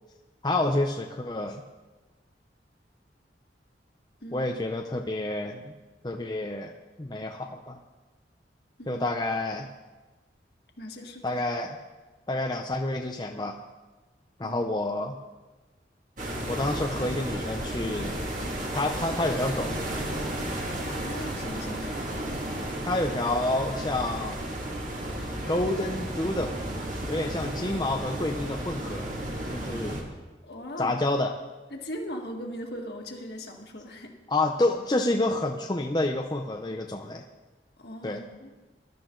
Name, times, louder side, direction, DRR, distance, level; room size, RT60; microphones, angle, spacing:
voice 1, 0.4-1.6 4.3-5.7 6.0-6.7 7.0-7.8 8.9-9.7 11.2-11.8 12.3-13.6 14.4-15.2 16.5-18.2 18.7-19.7 22.9-24.4 25.5-26.5 27.1-29.1 29.5-30.0 30.8-31.3 34.3-37.2 38.0-38.2, left 2 dB, 25° left, 2 dB, 0.7 m, -28 dB
voice 2, 10.8-11.4 14.4-14.6 21.0-22.0 30.4-31.0 31.7-34.2 37.8-38.5, equal, 60° left, 2 dB, 1.9 m, -39 dB
sound 1, 16.2-30.0, right 1 dB, 45° right, 2.2 m, -33 dB
20.0 x 12.0 x 3.9 m, 1.2 s
head